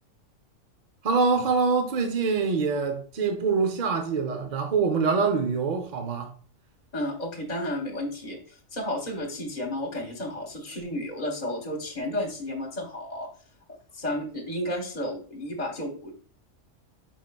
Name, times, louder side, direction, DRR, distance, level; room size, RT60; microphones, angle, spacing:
voice 1, 1.0-6.3, right 5 dB, 45° right, 0.8 m, -25 dB
voice 2, 6.9-13.3 13.9-16.1, left 1 dB, 35° left, 1.3 m, -32 dB
5.7 x 3.9 x 2.3 m
omnidirectional pair, 1.3 m